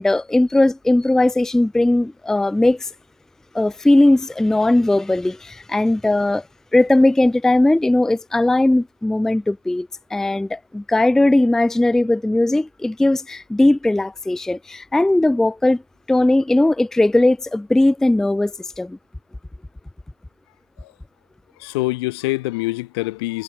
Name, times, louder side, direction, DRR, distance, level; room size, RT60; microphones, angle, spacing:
voice 1, 0.0-2.9 3.5-6.4 6.7-15.8 16.1-19.0, left 2 dB, 5° left, 0.5 m, -18 dB
voice 2, 21.6-23.4, left 21 dB, 50° left, 0.8 m, -25 dB
figure-of-eight pair, 85°, 16 cm